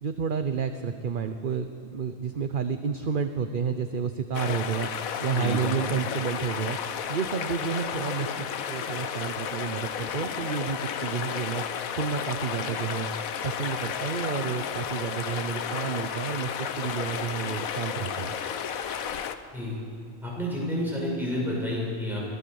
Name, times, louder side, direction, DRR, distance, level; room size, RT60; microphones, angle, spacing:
voice 1, 0.0-6.8 7.1-11.6 11.9-13.1 13.4-18.4, right 6 dB, 45° right, 9 dB, 0.8 m, -30 dB
sound 1, 4.3-19.4, left 8 dB, 80° left, 1.3 m, -32 dB
voice 2, 20.2-22.2, left 1 dB, ahead, -5 dB, 7.4 m, -30 dB
23.5 x 16.5 x 7.1 m, 2.4 s
omnidirectional pair, 1.4 m